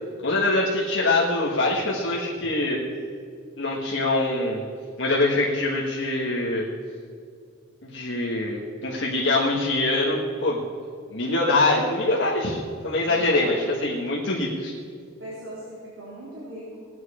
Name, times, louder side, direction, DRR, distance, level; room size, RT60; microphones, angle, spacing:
voice 1, 0.2-2.8 3.6-4.6 5.0-6.7 7.8-10.6 11.1-14.7, left 2 dB, 60° left, -4 dB, 1.4 m, -24 dB
voice 2, 13.1-13.6 15.2-16.9, equal, 75° right, -9 dB, 3.6 m, -39 dB
17.0 x 9.3 x 4.9 m, 2.2 s
head